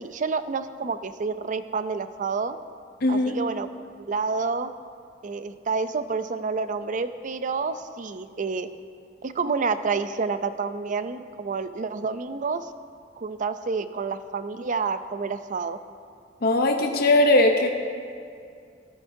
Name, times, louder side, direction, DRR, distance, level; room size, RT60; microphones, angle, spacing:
voice 1, 0.0-2.6 3.1-4.7 5.2-8.7 9.2-12.7 13.2-15.8, right 4 dB, 45° right, 11 dB, 0.4 m, -29 dB
voice 2, 3.0-3.3 16.4-17.7, left 2 dB, 55° left, 3 dB, 0.7 m, -19 dB
14.5 x 13.5 x 2.7 m, 2.3 s
head